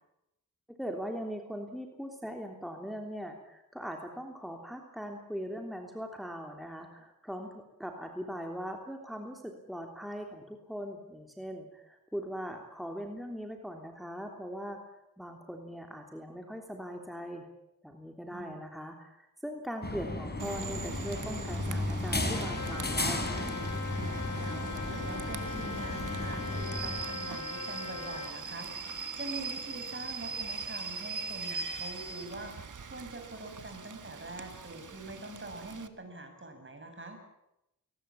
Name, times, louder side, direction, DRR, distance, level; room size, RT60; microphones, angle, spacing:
voice 1, 0.8-14.8 15.2-17.4 17.8-23.5, equal, ahead, 2 dB, 3.3 m, -40 dB
sound 1, 19.8-27.3, left 2 dB, 30° left, 4.5 m, -34 dB
Rain / Train, 20.4-35.9, right 5 dB, 65° right, 1.8 m, -41 dB
Trumpet, 22.3-28.4, left 5 dB, 60° left, 3.5 m, -41 dB
voice 2, 24.4-37.2, right 2 dB, 35° right, 5 dB, 7.1 m, -44 dB
21.0 x 19.5 x 8.5 m, 0.87 s
cardioid pair, 60°, 33 cm